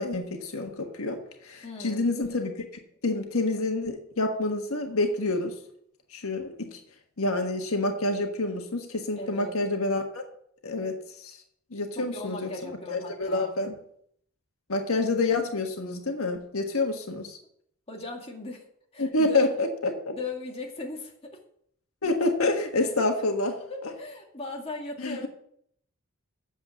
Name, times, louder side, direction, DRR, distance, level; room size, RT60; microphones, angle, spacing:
voice 1, 0.0-2.5 3.0-5.6 6.1-6.8 7.2-10.2 10.6-11.4 11.7-13.7 14.7-17.4 19.0-20.2 22.0-23.9 25.0-25.2, left 2 dB, 85° left, 4 dB, 1.5 m, -28 dB
voice 2, 1.6-2.1 9.2-9.5 12.0-13.6 17.9-18.7 18.9-19.5 20.1-21.4 22.8-22.9 23.7-25.3, left 3 dB, 30° left, 0 dB, 2.1 m, -38 dB
8.9 x 7.4 x 7.4 m, 0.69 s
head